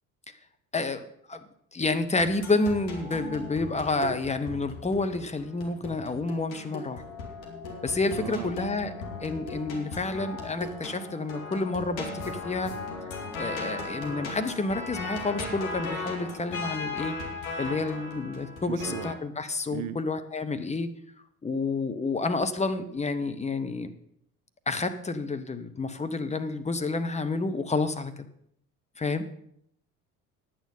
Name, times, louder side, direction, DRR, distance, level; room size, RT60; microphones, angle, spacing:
voice 1, 0.7-7.0 7.8-8.9 9.2-12.7 13.4-17.2 17.6-20.9 21.4-23.9 24.7-28.1 29.0-29.3, left 3 dB, 15° left, 9 dB, 0.8 m, -29 dB
sound 1, 2.2-19.1, left 3 dB, 65° left, 2.4 m, -37 dB
voice 2, 8.2-8.6 18.7-19.1 19.7-20.0, right 12 dB, 45° right, 13 dB, 0.6 m, -36 dB
10.0 x 9.2 x 5.4 m, 0.70 s
figure-of-eight pair, 60°, 45 cm